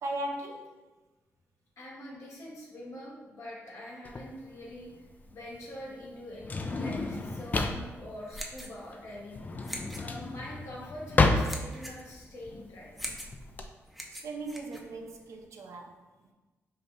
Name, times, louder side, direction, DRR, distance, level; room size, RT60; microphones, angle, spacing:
voice 1, 0.0-0.8 14.2-16.0, right 1 dB, 70° right, 2 dB, 0.6 m, -37 dB
voice 2, 1.8-5.0 5.3-9.4 10.0-12.9, left 1 dB, 65° left, -4 dB, 1.4 m, -44 dB
Drawer open or close, 4.0-13.6, left 3 dB, 35° left, 0.4 m, -31 dB
sound 1, 8.1-15.5, equal, ahead, 0.6 m, -44 dB
5.0 x 2.9 x 2.7 m, 1.2 s
cardioid pair, 70°, 5 cm